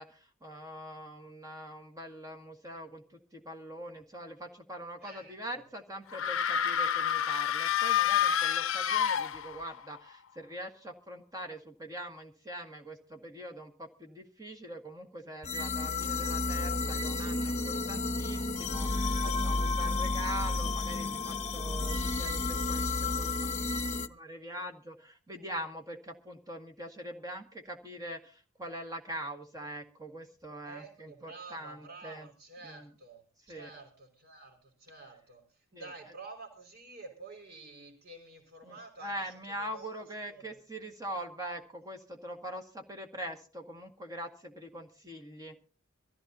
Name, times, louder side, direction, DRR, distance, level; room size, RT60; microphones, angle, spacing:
voice 1, 0.0-23.7 24.1-32.3 32.6-32.9 33.5-33.7 35.7-35.9 38.6-45.6, right 1 dB, 15° right, 4 dB, 1.8 m, -43 dB
voice 2, 5.0-5.6 19.1-19.9 30.7-40.0 40.3-40.6, right 3 dB, 50° right, 3 dB, 5.5 m, -50 dB
sound 1, 6.1-9.8, left 9 dB, 70° left, 0.7 m, -28 dB
sound 2, 15.4-24.1, left 3 dB, 35° left, 0.9 m, -31 dB
24.0 x 15.0 x 2.8 m, 0.36 s
head